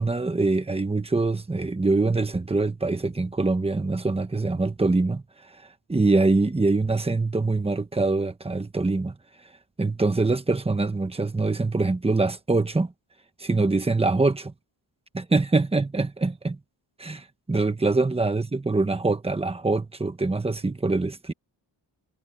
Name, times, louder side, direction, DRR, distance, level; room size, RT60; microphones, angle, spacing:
voice 1, 0.0-5.2 5.9-9.1 9.8-12.9 13.4-14.5 15.1-16.6 17.0-21.3, right 3 dB, 15° right, 1.1 m, -24 dB
wide cardioid pair, 180°, 44 cm